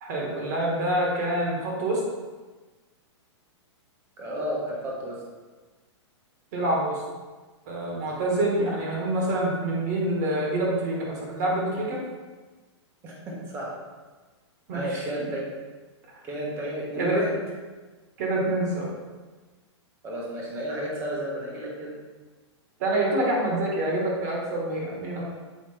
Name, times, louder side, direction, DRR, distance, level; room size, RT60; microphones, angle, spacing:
voice 1, 0.0-2.0 6.5-7.0 7.7-12.0 14.7-15.3 17.0-17.2 18.2-18.9 22.8-25.3, right 1 dB, 35° right, -2 dB, 1.5 m, -26 dB
voice 2, 4.2-5.2 13.0-13.7 14.7-15.4 16.2-17.4 20.0-21.9, right 1 dB, 15° right, -3 dB, 1.2 m, -32 dB
7.8 x 5.0 x 3.4 m, 1.3 s
hypercardioid pair, 175°, 15 cm